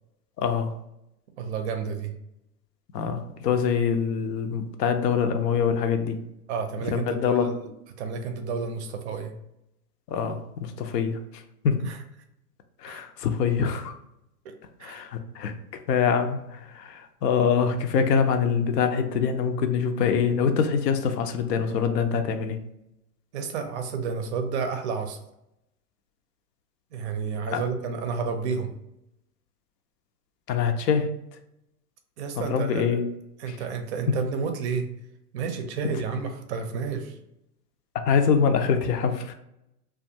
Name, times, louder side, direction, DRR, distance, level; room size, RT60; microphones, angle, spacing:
voice 1, 0.4-0.8 2.9-6.2 6.9-7.6 10.1-11.2 11.6-11.8 12.8-13.9 14.8-15.5 15.9-22.6 27.5-27.6 30.5-31.1 32.5-33.1 33.5-33.6 38.1-39.3, left 6 dB, 85° left, 7 dB, 0.6 m, -24 dB
voice 2, 1.4-2.1 6.5-7.7 8.0-9.3 11.9-12.0 12.9-13.0 14.4-14.5 14.8-15.0 23.3-25.2 26.9-28.7 32.2-33.0 33.4-34.9 35.3-37.2, right 5 dB, 50° right, 6 dB, 0.4 m, -31 dB
2.4 x 2.2 x 2.6 m, 0.83 s
hypercardioid pair, 125°, 48 cm